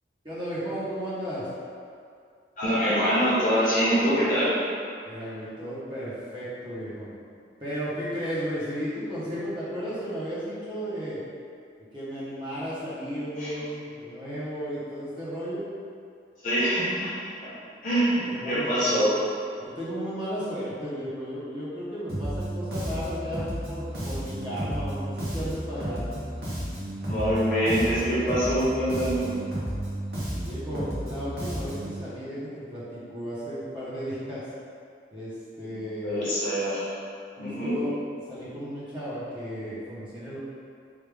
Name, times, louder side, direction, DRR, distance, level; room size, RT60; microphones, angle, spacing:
voice 1, 0.2-1.4 5.0-7.1 7.6-11.2 11.9-15.6 18.1-19.1 19.6-26.2 30.4-34.4 35.1-36.3 37.4-37.9 38.3-40.4, equal, 25° right, -10 dB, 0.8 m, -34 dB
voice 2, 2.6-4.5 13.4-13.5 16.4-17.3 17.8-19.1 27.1-29.3 35.7-36.9 37.4-37.7, equal, 45° left, -10 dB, 1.0 m, -24 dB
Bass guitar, 22.1-32.0, right 1 dB, 55° right, 0.9 m, -33 dB
3.2 x 2.3 x 3.3 m, 2.4 s
head